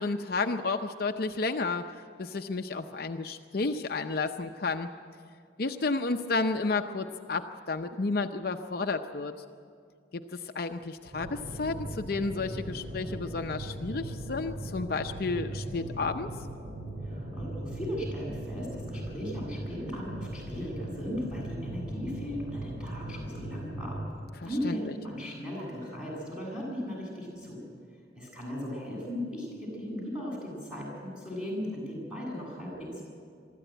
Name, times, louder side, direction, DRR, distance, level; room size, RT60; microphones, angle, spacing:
voice 1, 0.0-1.8 2.2-4.9 5.6-9.3 10.1-16.3 24.4-24.8, left 3 dB, 55° left, 6 dB, 0.6 m, -31 dB
sound 1, 11.1-24.0, right 1 dB, 70° right, 5.4 m, -39 dB
voice 2, 17.0-24.0 24.4-27.6 28.2-33.0, equal, 5° right, -4 dB, 7.7 m, -37 dB
23.5 x 13.5 x 9.1 m, 2.2 s
head